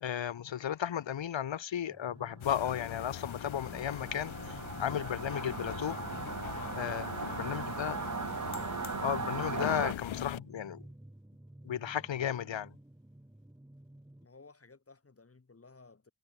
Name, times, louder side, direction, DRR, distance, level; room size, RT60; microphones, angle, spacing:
voice 1, 0.0-6.0 6.7-8.0 9.0-10.8 11.6-12.7, left 9 dB, 75° left, 1.3 m, -34 dB
sound 1, 1.9-14.2, right 1 dB, 5° right, 3.0 m, -53 dB
sound 2, 2.4-10.4, left 11 dB, 90° left, 0.9 m, -42 dB
Singing / Musical instrument, 2.8-9.9, right 5 dB, 40° right, 2.1 m, -39 dB
voice 2, 14.2-16.1, left 3 dB, 30° left, 4.4 m, -58 dB
wide cardioid pair, 155°, 46 cm